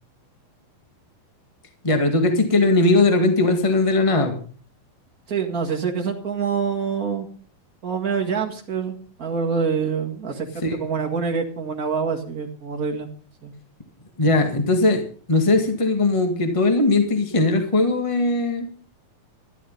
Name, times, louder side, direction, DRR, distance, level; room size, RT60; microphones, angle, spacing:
voice 1, 1.8-4.4 10.6-10.8 14.2-15.0 15.3-18.7, left 2 dB, 35° left, 5 dB, 0.4 m, -19 dB
voice 2, 5.3-7.3 7.8-10.5 10.7-13.1 13.4-13.5, right 5 dB, 35° right, 2 dB, 1.5 m, -26 dB
12.5 x 12.5 x 5.4 m, 0.41 s
omnidirectional pair, 4.2 m